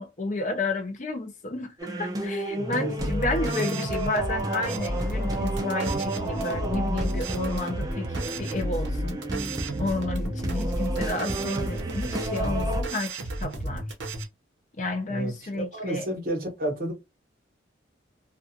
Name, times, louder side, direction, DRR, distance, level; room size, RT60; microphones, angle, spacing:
voice 1, 0.0-9.2 9.8-13.8 14.8-16.1, left 2 dB, 40° left, 0.5 m, -31 dB
sound 1, 1.8-12.8, right 2 dB, 20° right, 0.3 m, -32 dB
voice 2, 2.5-2.9 15.1-16.9, right 1 dB, 45° right, 0.9 m, -31 dB
sound 2, 3.0-14.2, equal, 75° right, 0.7 m, -32 dB
sound 3, 4.3-12.3, left 1 dB, 5° left, 0.7 m, -44 dB
2.4 x 2.3 x 2.6 m
head